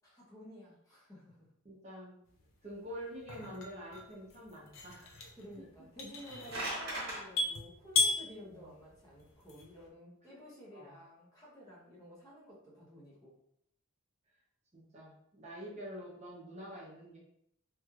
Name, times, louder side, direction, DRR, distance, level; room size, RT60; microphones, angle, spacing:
voice 1, 0.0-1.5 5.4-13.3, equal, 15° left, -6 dB, 0.8 m, -52 dB
voice 2, 1.6-2.1 2.6-5.3 5.6-5.7 8.4-8.8 10.3-10.4 10.7-11.0 14.7-17.2, equal, 35° right, -4 dB, 0.7 m, -47 dB
sound 1, 2.3-9.9, left 3 dB, 70° left, 0.5 m, -37 dB
sound 2, 6.1-7.2, right 1 dB, 50° right, 1.0 m, -38 dB
3.1 x 2.9 x 2.3 m, 0.74 s
head